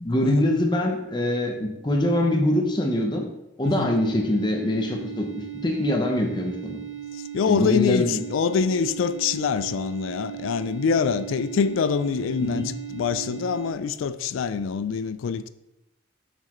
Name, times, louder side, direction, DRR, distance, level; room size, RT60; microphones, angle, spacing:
voice 1, 0.0-3.3 3.6-5.3 5.6-6.8 7.5-8.2 12.4-12.6, left 1 dB, 20° left, 0.8 m, -24 dB
voice 2, 3.6-4.0 7.1-15.5, left 6 dB, 80° left, 0.3 m, -25 dB
sound 1, 3.6-13.7, right 10 dB, 70° right, 0.6 m, -37 dB
6.5 x 6.1 x 3.0 m
head